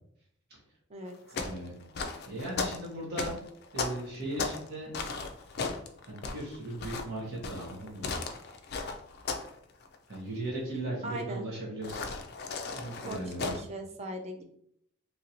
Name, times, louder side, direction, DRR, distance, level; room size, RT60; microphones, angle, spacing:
sound 1, 1.1-4.7 4.9-9.6 9.8-10.2 11.8-13.6, left 4 dB, 50° left, 0.3 m, -36 dB
voice 1, 1.3-1.7 2.3-3.4 3.7-4.9 6.1-8.1 10.1-12.0 12.7-13.6, right 1 dB, 50° right, -5 dB, 1.1 m, -37 dB
voice 2, 11.0-11.5 13.1-14.4, right 1 dB, 30° right, 4 dB, 0.3 m, -38 dB
2.9 x 2.6 x 2.8 m, 0.69 s
head